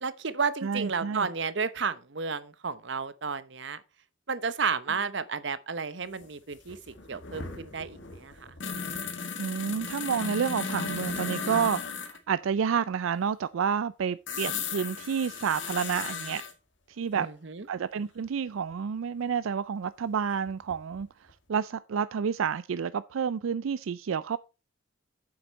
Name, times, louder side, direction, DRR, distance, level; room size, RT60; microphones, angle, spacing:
voice 1, 0.0-3.8 4.3-8.3 17.1-17.6, right 5 dB, 65° right, 0.8 m, -32 dB
voice 2, 0.6-1.3 9.4-16.4 17.0-17.3 17.7-21.1 21.5-24.4, right 7 dB, 85° right, 0.4 m, -29 dB
sound 1, 6.2-6.3 6.5-12.2 14.3-16.5 18.7-18.8 20.3-21.0 21.3-21.4, left 5 dB, 65° left, 1.9 m, -36 dB
9.0 x 7.8 x 4.0 m
head